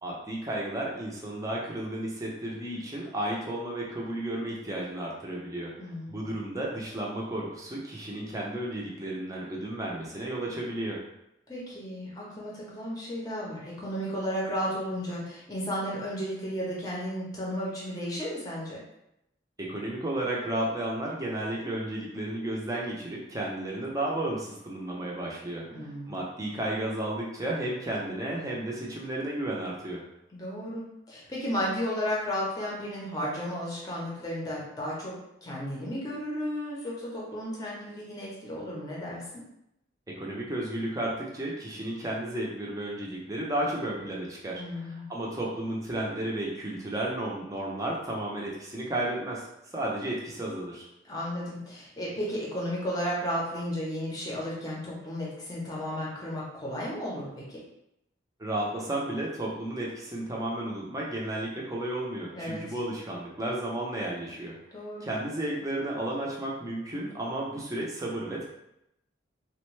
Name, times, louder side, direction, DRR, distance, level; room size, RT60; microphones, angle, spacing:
voice 1, 0.0-5.7 6.1-11.0 19.6-30.1 40.1-49.5 49.7-50.9 58.4-64.5 65.0-68.5, right 1 dB, 15° right, -3 dB, 0.6 m, -33 dB
voice 2, 5.8-6.2 11.5-18.8 25.7-26.2 30.3-35.1 35.4-39.2 44.6-45.1 51.0-57.6 62.3-62.6 64.7-65.1, equal, 20° left, -5 dB, 0.7 m, -33 dB
3.4 x 2.2 x 3.1 m, 0.82 s
head